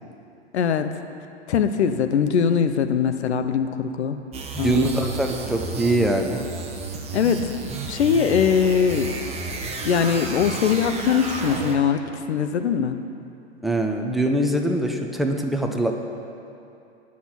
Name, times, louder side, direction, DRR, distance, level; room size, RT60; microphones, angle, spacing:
voice 1, 0.5-0.9 1.5-4.2 4.6-5.0 7.1-7.5 7.9-9.1 9.8-12.0 12.3-13.0, left 7 dB, 75° left, 9 dB, 0.7 m, -21 dB
sound 1, 4.3-12.0, right 3 dB, 20° right, 0.9 m, -32 dB
voice 2, 4.5-6.4 13.6-16.0, right 1 dB, ahead, 3 dB, 0.5 m, -23 dB
8.5 x 5.8 x 7.5 m, 2.7 s
figure-of-eight pair, 100°, 34 cm